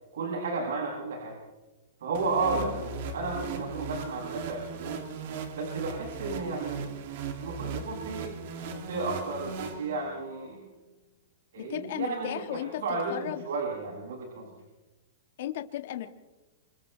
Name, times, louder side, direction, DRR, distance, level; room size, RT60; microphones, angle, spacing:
voice 1, 0.1-1.4 2.0-5.0 5.5-6.8 7.4-8.3 8.6-10.6 11.5-14.5, right 3 dB, 85° right, -1 dB, 7.3 m, -33 dB
sound 1, 2.1-10.3, right 5 dB, 60° right, 2.7 m, -38 dB
voice 2, 11.6-12.8 13.1-13.4 15.4-16.1, left 12 dB, 65° left, 5 dB, 1.8 m, -35 dB
28.0 x 27.0 x 3.4 m, 1.1 s
supercardioid pair, 150°, 0 cm